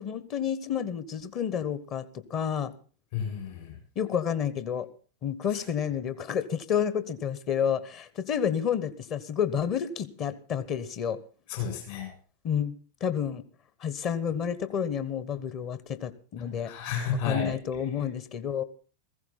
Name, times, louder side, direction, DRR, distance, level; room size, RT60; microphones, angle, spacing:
voice 1, 0.0-2.7 3.9-4.9 5.2-11.2 12.4-13.4 13.8-16.7 17.2-18.6, left 8 dB, 35° left, 14 dB, 1.1 m, -30 dB
voice 2, 3.1-3.8 11.5-12.1 16.7-17.5, left 6 dB, 55° left, 2 dB, 7.4 m, -31 dB
16.0 x 15.5 x 4.2 m, 0.39 s
figure-of-eight pair, 90°, 0 cm